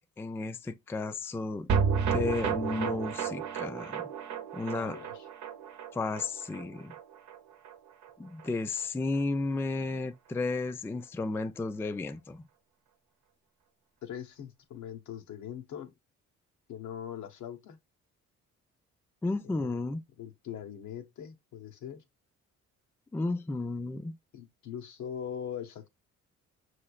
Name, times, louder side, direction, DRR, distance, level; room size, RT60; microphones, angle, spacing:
voice 1, 0.2-1.7 2.1-4.0 4.5-5.0 5.9-6.9 8.2-12.4 19.2-20.0 23.1-24.2, left 3 dB, 10° left, 0.3 m, -33 dB
sound 1, 1.7-8.1 8.4-8.5 8.8-8.9, right 6 dB, 70° right, 0.8 m, -32 dB
voice 2, 4.7-5.3 14.0-15.9 16.7-17.8 19.4-19.8 20.2-22.0 24.3-25.9, left 9 dB, 75° left, 0.9 m, -41 dB
5.9 x 3.2 x 2.3 m
cardioid pair, 90°, 30 cm